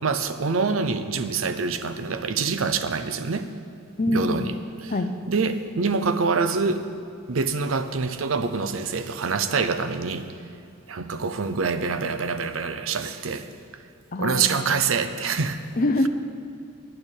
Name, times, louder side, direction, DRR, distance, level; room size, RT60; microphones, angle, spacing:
voice 1, 0.0-3.5 4.1-4.5 4.8-4.9 5.3-6.9 7.3-10.3 10.9-13.5 14.2-15.6, right 4 dB, 75° right, 10 dB, 0.7 m, -25 dB
voice 2, 4.0-4.5 4.9-5.1 14.1-14.8 15.8-16.1, left 2 dB, 40° left, 8 dB, 0.6 m, -25 dB
9.7 x 6.5 x 8.9 m, 2.5 s
head